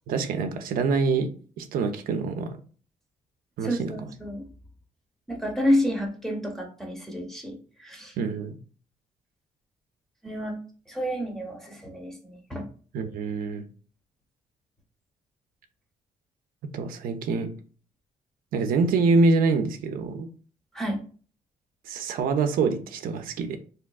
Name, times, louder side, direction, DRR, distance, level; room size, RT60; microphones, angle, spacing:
voice 1, 0.1-1.3 1.6-2.6 3.6-4.1 8.2-8.6 12.9-13.6 16.7-17.5 18.5-20.3 21.9-23.6, right 4 dB, 80° right, 7 dB, 0.5 m, -25 dB
voice 2, 3.6-4.5 5.3-8.2 10.2-10.6 10.9-12.7 20.7-21.0, equal, ahead, 1 dB, 0.8 m, -29 dB
3.4 x 2.8 x 2.3 m, 0.40 s
cardioid pair, 120°, 15 cm